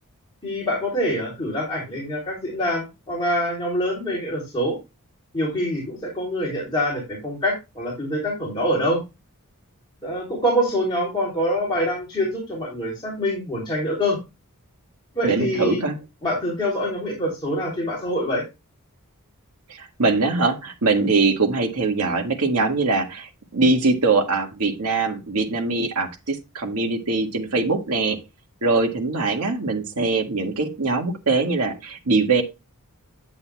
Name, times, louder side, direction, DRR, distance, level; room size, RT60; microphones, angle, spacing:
voice 1, 0.4-4.8 5.3-9.0 10.0-14.2 15.1-15.9 16.2-18.4, equal, 20° left, -4 dB, 3.1 m, -25 dB
voice 2, 15.2-16.0 19.7-28.2 28.6-32.4, right 3 dB, 90° right, 3 dB, 1.8 m, -22 dB
9.8 x 8.3 x 2.3 m, 0.24 s
head